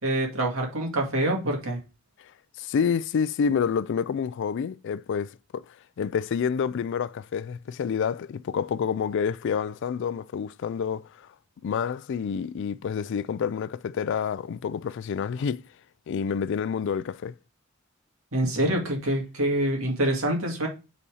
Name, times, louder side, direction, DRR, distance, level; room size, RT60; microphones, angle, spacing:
voice 1, 0.0-1.8 18.3-20.7, right 1 dB, 85° right, 2.2 m, -26 dB
voice 2, 2.6-5.6 6.0-11.3 11.6-15.6 16.1-17.3, left 6 dB, 60° left, 0.3 m, -28 dB
5.5 x 4.1 x 4.8 m
head